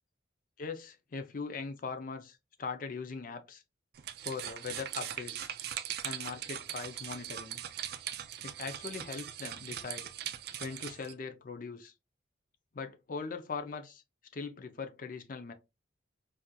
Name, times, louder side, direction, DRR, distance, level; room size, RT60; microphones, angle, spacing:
voice 1, 0.6-3.6 4.2-5.5 6.0-7.6 8.4-10.1 10.6-11.9 12.7-14.0 14.3-15.5, left 4 dB, 45° left, 0.5 m, -40 dB
sound 1, 3.9-11.1, right 11 dB, 50° right, 0.3 m, -40 dB
4.2 x 2.5 x 2.2 m
head